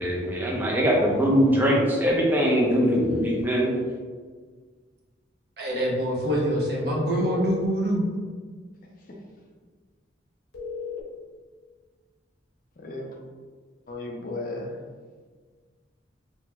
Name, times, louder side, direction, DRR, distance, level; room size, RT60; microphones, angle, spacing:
voice 1, 0.0-3.8, equal, 10° right, -3 dB, 0.4 m, -22 dB
sound 1, 2.1-3.5 6.3-7.7 10.5-11.0, left 5 dB, 85° left, 0.7 m, -33 dB
voice 2, 5.6-8.0, right 1 dB, 55° right, -2 dB, 0.7 m, -25 dB
voice 3, 12.8-13.2 13.9-14.8, left 2 dB, 45° left, 0 dB, 0.4 m, -34 dB
2.8 x 2.0 x 3.3 m, 1.5 s
head